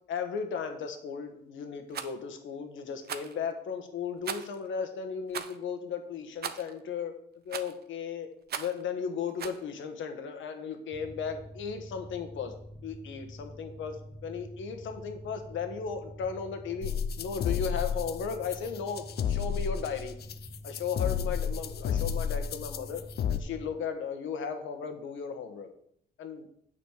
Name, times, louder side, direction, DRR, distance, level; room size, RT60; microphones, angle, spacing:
voice 1, 0.1-7.1 7.4-8.3 8.6-12.5 12.8-20.1 20.6-23.0 23.3-25.7 26.2-26.5, left 6 dB, 75° left, 6 dB, 1.3 m, -36 dB
Rattle, 1.9-2.1 3.0-3.4 4.2-4.6 5.3-5.6 6.4-6.7 7.5-7.8 8.5-8.8 9.4-9.6, right 8 dB, 55° right, 0.7 m, -37 dB
Mechanical fan, 10.9-23.7, equal, 25° right, 1.4 m, -47 dB
sound 1, 16.8-23.4, left 8 dB, 55° left, 0.6 m, -31 dB
8.6 x 4.2 x 6.6 m, 0.69 s
cardioid pair, 90°, 20 cm